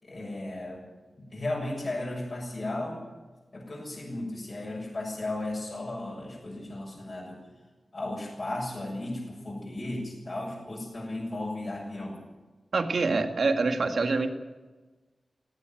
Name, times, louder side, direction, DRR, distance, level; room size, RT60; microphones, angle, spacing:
voice 1, 0.0-0.9 1.2-3.0 3.5-7.4 7.9-12.2, left 2 dB, 40° left, -4 dB, 6.7 m, -35 dB
voice 2, 12.7-14.3, right 3 dB, 65° right, 5 dB, 2.0 m, -25 dB
17.0 x 17.0 x 9.3 m, 1.3 s
wide cardioid pair, 130°, 0 cm